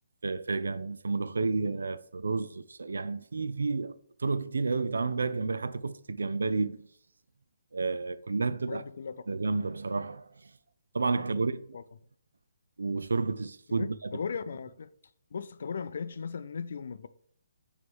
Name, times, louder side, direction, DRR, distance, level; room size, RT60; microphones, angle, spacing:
voice 1, 0.2-6.9 7.7-8.8 9.3-10.5 10.9-11.6 12.8-14.1, right 3 dB, 85° right, 0.4 m, -31 dB
voice 2, 8.7-9.2 11.7-11.8 13.7-14.9 15.3-17.1, left 6 dB, 65° left, 0.4 m, -37 dB
6.2 x 3.1 x 5.3 m
hypercardioid pair, 160°, 0 cm